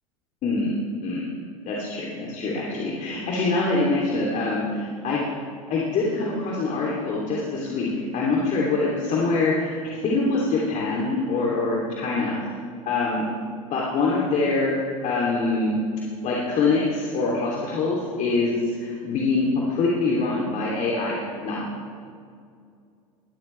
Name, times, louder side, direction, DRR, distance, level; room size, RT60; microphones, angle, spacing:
voice 1, 0.4-0.7 1.0-1.2 1.7-5.2 5.7-12.3 12.8-13.3 13.7-14.8 15.0-15.8 16.2-21.7, left 3 dB, 45° left, -4 dB, 3.1 m, -24 dB
21.5 x 13.5 x 3.4 m, 2.3 s
hypercardioid pair, 85°, 18 cm